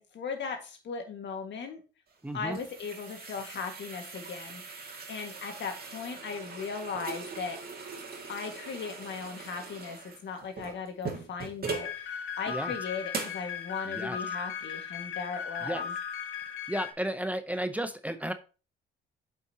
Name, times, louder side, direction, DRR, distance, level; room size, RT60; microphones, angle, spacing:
voice 1, 0.0-1.8 2.3-7.6 8.3-15.9, left 5 dB, 65° left, 5 dB, 1.9 m, -38 dB
sound 1, 2.1-12.0 12.5-12.6 13.1-13.5, right 4 dB, 50° right, 2.2 m, -41 dB
voice 2, 2.2-2.6 12.5-12.7 13.9-14.2 15.6-15.8 16.7-18.3, right 1 dB, 5° right, 9 dB, 0.7 m, -33 dB
sound 2, 11.7-16.9, left 7 dB, 85° left, 1.3 m, -37 dB
8.7 x 5.7 x 2.9 m, 0.33 s
cardioid pair, 90°, 20 cm